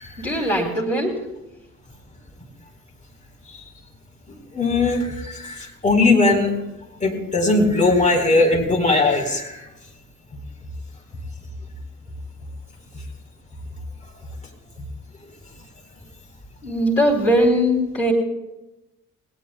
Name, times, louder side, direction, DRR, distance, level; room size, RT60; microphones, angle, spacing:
voice 1, 0.2-1.3 16.6-18.1, equal, 90° left, -4 dB, 2.6 m, -20 dB
voice 2, 4.5-6.5 7.0-9.6, left 3 dB, 20° left, 2 dB, 4.3 m, -19 dB
19.5 x 19.0 x 2.3 m, 0.95 s
figure-of-eight pair, 40°, 37 cm